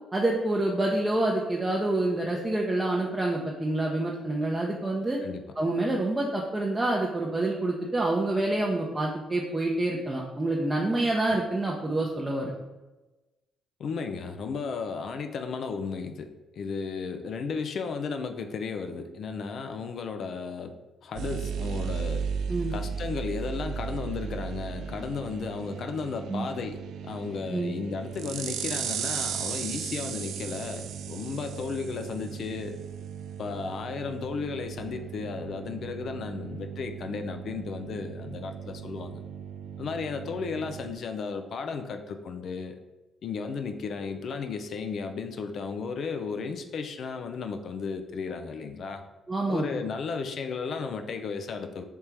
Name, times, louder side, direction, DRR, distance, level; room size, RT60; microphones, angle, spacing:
voice 1, 0.1-5.2 5.6-12.5 22.5-22.7 26.3-26.5 27.5-27.7 49.3-49.7, right 2 dB, 20° right, -2 dB, 0.6 m, -27 dB
voice 2, 13.8-20.7 21.0-22.3 22.7-32.8 33.4-39.2 39.8-42.8 43.2-49.0 49.5-51.9, left 5 dB, 60° left, 6 dB, 0.4 m, -34 dB
sound 1, 21.2-40.9, right 7 dB, 75° right, 0.3 m, -36 dB
3.5 x 2.8 x 4.6 m, 1.1 s
cardioid pair, 90°, 0 cm